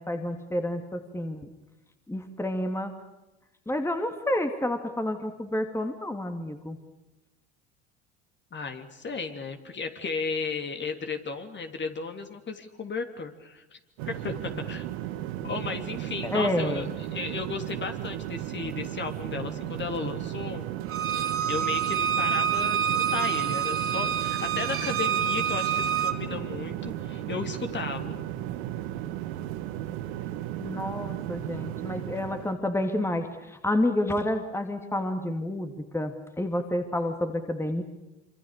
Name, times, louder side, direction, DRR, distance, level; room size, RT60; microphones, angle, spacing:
voice 1, 0.0-1.5 2.1-2.9 3.7-6.8 16.2-16.9 30.6-37.8, left 1 dB, 5° left, 6 dB, 2.7 m, -29 dB
voice 2, 8.5-13.8 14.1-14.8 15.4-16.9 17.1-20.7 21.5-28.2, left 4 dB, 30° left, 5 dB, 3.2 m, -34 dB
sound 1, 14.0-32.5, right 12 dB, 70° right, 2.1 m, -35 dB
Bowed string instrument, 20.9-26.1, right 8 dB, 40° right, 2.8 m, -27 dB
26.0 x 26.0 x 6.6 m, 0.99 s
hypercardioid pair, 75°, 34 cm